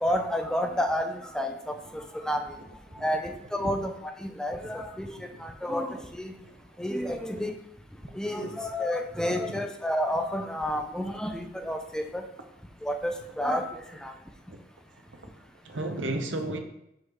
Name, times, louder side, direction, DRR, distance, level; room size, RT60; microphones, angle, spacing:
voice 1, 0.0-2.4 3.0-6.3 6.8-7.5 8.1-12.2 12.8-13.6 14.0-14.1, equal, 5° left, 5 dB, 0.4 m, -30 dB
voice 2, 15.6-16.6, right 2 dB, 80° right, 6 dB, 0.8 m, -33 dB
5.3 x 3.9 x 4.6 m, 0.82 s
head